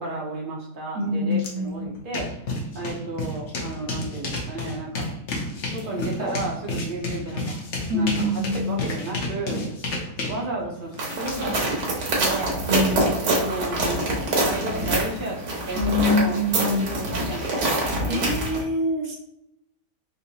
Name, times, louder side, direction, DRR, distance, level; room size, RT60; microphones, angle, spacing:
voice 1, 0.0-2.5 2.7-5.1 5.6-7.6 7.9-8.4 8.7-9.7 10.3-12.0 12.2-12.7 13.4-18.3, right 2 dB, 40° right, -2 dB, 0.8 m, -33 dB
voice 2, 0.9-2.0 7.9-8.8 12.6-13.2 15.7-17.0 18.1-19.2, left 1 dB, 60° right, 0 dB, 1.1 m, -25 dB
sound 1, 1.4-1.5 1.8-12.0, left 2 dB, 55° left, 0.9 m, -31 dB
sound 2, 5.6-6.4 7.2-7.3 8.2-9.0 9.5-9.7 10.6-11.6, left 2 dB, 35° left, 1.2 m, -38 dB
sound 3, 11.0-18.6, right 1 dB, 85° right, 1.7 m, -25 dB
3.8 x 2.8 x 2.8 m, 0.78 s
omnidirectional pair, 1.8 m